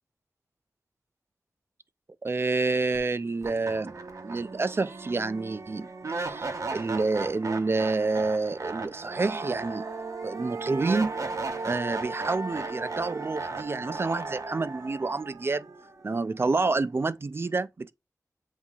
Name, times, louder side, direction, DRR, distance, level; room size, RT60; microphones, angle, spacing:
voice 1, 2.2-3.9 4.2-5.9 6.2-9.8 10.2-11.1 11.6-15.7 16.0-17.9, right 3 dB, 40° right, 0.3 m, -28 dB
sound 1, 2.9-3.0 3.4-16.5, right 3 dB, 60° right, 0.7 m, -36 dB
7.3 x 2.7 x 2.3 m
wide cardioid pair, 85°, 6 cm